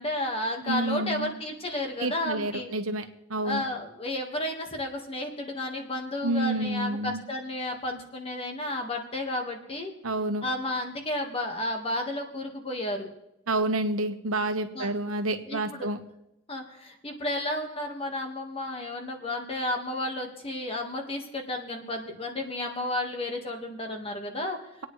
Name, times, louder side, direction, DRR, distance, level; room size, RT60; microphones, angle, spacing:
voice 1, 0.0-2.7 3.4-9.9 10.4-13.1 14.7-14.9 15.5-15.9 16.5-24.6, left 1 dB, 30° left, 2 dB, 1.6 m, -32 dB
voice 2, 0.7-1.3 2.0-3.0 3.3-3.6 6.2-7.2 10.0-10.5 13.5-16.0, right 2 dB, 85° right, 6 dB, 1.3 m, -29 dB
27.0 x 9.4 x 3.2 m, 0.88 s
head